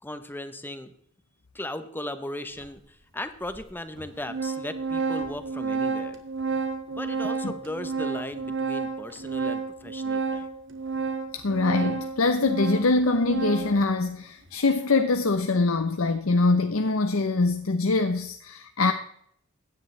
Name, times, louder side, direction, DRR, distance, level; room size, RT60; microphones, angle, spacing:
voice 1, 0.0-0.9 1.5-6.2 6.9-10.5, left 1 dB, 10° left, 0.8 m, -37 dB
Organ, 2.6-2.7 3.5-3.6 4.0-13.9, right 4 dB, 60° right, 1.7 m, -31 dB
voice 2, 11.3-18.9, left 3 dB, 85° left, 0.8 m, -23 dB
16.0 x 10.5 x 3.3 m
head